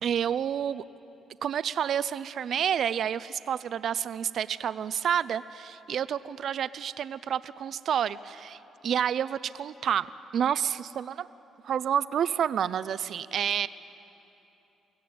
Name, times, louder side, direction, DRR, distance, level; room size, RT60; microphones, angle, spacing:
voice 1, 0.0-0.8 1.4-10.1 10.3-11.3 11.6-13.7, right 9 dB, 65° right, 16 dB, 0.5 m, -29 dB
24.0 x 16.0 x 9.3 m, 3.0 s
cardioid pair, 90°, 0 cm